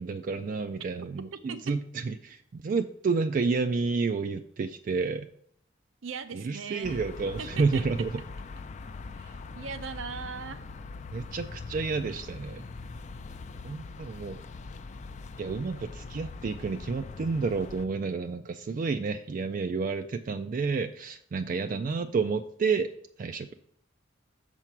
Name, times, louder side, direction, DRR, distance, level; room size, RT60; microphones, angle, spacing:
voice 1, 0.0-5.3 6.3-8.1 11.1-12.6 13.6-14.4 15.4-22.9 23.2-23.5, right 4 dB, 45° right, 8 dB, 0.3 m, -30 dB
voice 2, 6.0-7.0 7.4-7.8 9.1-10.6, right 5 dB, 90° right, 10 dB, 0.6 m, -39 dB
sound 1, 6.8-17.9, left 3 dB, 35° left, 0.4 m, -42 dB
6.7 x 4.5 x 5.9 m, 0.67 s
head